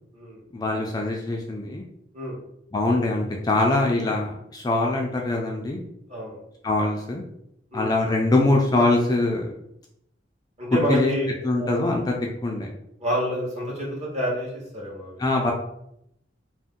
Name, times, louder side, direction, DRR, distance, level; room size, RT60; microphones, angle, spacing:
voice 1, 0.5-1.8 2.7-5.8 6.6-7.2 7.7-9.5 10.9-11.1 11.4-12.1 12.4-12.7 15.2-15.5, left 2 dB, 20° left, 0 dB, 0.3 m, -23 dB
voice 2, 10.6-11.3 11.6-11.8 13.0-15.2, equal, 40° right, -5 dB, 1.1 m, -28 dB
2.6 x 2.1 x 3.6 m, 0.77 s
head